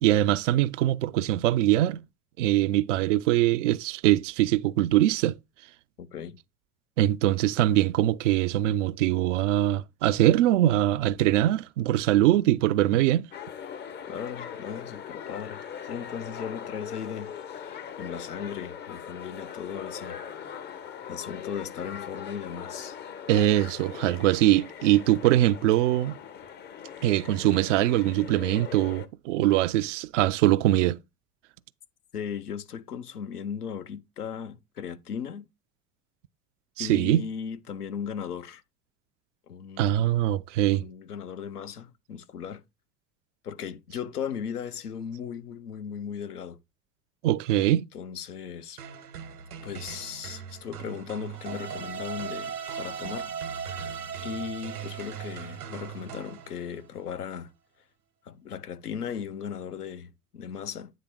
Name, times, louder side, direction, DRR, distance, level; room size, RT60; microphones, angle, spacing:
voice 1, 0.0-2.0 2.4-5.4 7.0-13.3 23.3-26.2 27.0-31.0 36.8-37.3 39.8-40.8 47.2-47.9, right 14 dB, 55° right, 0.5 m, -22 dB
voice 2, 6.0-6.4 14.1-20.2 21.1-23.0 32.1-35.5 36.8-38.6 39.5-40.2 40.7-42.6 43.4-46.6 47.6-48.8 49.6-53.3 54.2-57.5 58.2-60.9, left 7 dB, 80° left, 0.7 m, -37 dB
sound 1, 13.3-29.1, left 8 dB, 25° left, 0.6 m, -40 dB
sound 2, 48.8-56.9, right 8 dB, 70° right, 1.1 m, -42 dB
sound 3, 51.3-56.6, right 7 dB, 90° right, 0.8 m, -38 dB
9.2 x 3.4 x 4.5 m
figure-of-eight pair, 70°, 46 cm